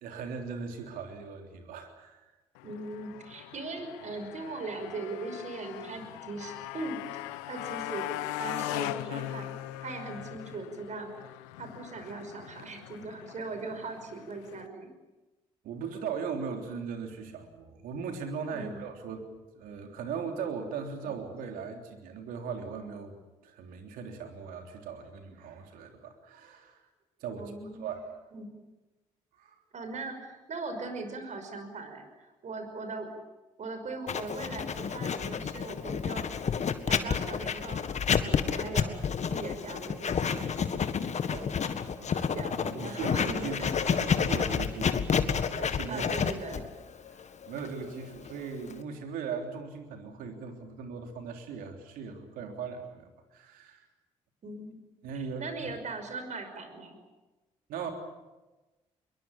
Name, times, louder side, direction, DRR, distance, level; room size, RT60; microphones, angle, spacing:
voice 1, 0.0-2.2 15.6-19.3 19.6-23.2 23.4-26.8 27.2-27.5 27.8-28.1 29.4-29.6 42.0-46.0 47.1-53.8 55.0-55.7 57.7-57.9, right 6 dB, 75° right, 4 dB, 3.5 m, -39 dB
Motorcycle, 2.6-14.7, left 15 dB, 85° left, 0.8 m, -40 dB
voice 2, 2.6-9.5 9.8-11.1 11.6-14.9 18.5-18.8 21.0-21.1 27.4-27.9 28.3-28.5 29.7-33.1 33.6-36.3 36.8-37.9 38.2-39.0 39.3-40.9 41.3-41.5 42.3-43.7 44.0-44.2 45.9-46.6 54.4-54.8 55.4-57.0, right 3 dB, 55° right, 7 dB, 5.6 m, -40 dB
Writing, 34.1-48.8, left 7 dB, 55° left, 1.7 m, -30 dB
22.5 x 21.5 x 8.6 m, 1.1 s
hypercardioid pair, 45°, 15 cm